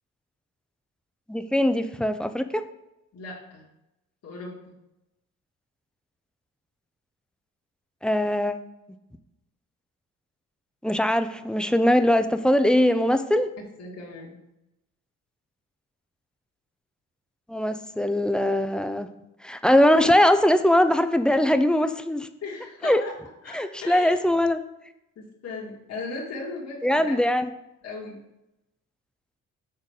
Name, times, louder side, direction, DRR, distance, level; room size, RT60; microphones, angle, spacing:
voice 1, 1.3-2.6 8.0-8.6 10.8-13.5 17.5-19.1 19.4-22.3 22.8-23.0 23.5-24.6 26.8-27.5, left 1 dB, 5° left, 9 dB, 0.5 m, -21 dB
voice 2, 3.1-3.6 4.2-4.6 13.6-14.4 22.4-23.1 23.4-24.1 25.2-27.2 27.8-28.2, left 3 dB, 55° left, -3 dB, 1.9 m, -37 dB
6.5 x 3.9 x 6.4 m, 0.91 s
cardioid pair, 90°, 30 cm